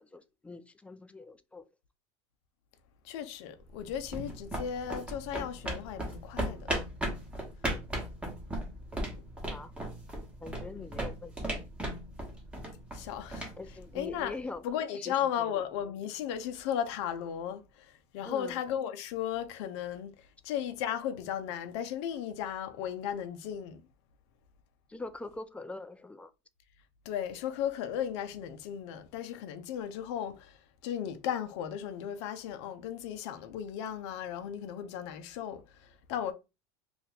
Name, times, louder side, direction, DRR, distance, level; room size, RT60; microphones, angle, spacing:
voice 1, 0.0-1.7 9.5-9.7 10.4-11.4 13.6-14.6 15.0-15.6 18.3-18.6 24.9-26.3, left 3 dB, 10° left, 0.3 m, -43 dB
voice 2, 3.0-6.7 10.8-10.9 12.9-13.5 13.9-14.4 14.6-23.8 27.0-36.3, left 9 dB, 70° left, 0.6 m, -36 dB
sound 1, 3.7-14.5, right 1 dB, 10° right, 1.2 m, -37 dB
2.6 x 2.4 x 4.1 m
supercardioid pair, 110°, 15 cm